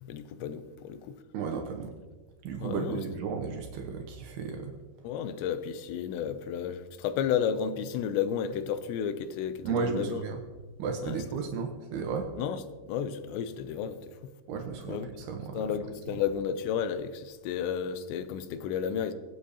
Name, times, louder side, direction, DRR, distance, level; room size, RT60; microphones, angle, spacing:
voice 1, 0.0-1.2 2.6-3.0 5.0-10.2 11.0-11.2 12.4-12.6 12.9-14.3 14.9-15.1 15.5-19.1, left 8 dB, 80° left, 2.8 m, -32 dB
voice 2, 1.3-1.9 2.4-4.7 9.6-10.4 10.8-12.3 14.5-15.7, right 5 dB, 75° right, 2.7 m, -34 dB
23.5 x 8.1 x 2.8 m
omnidirectional pair, 5.2 m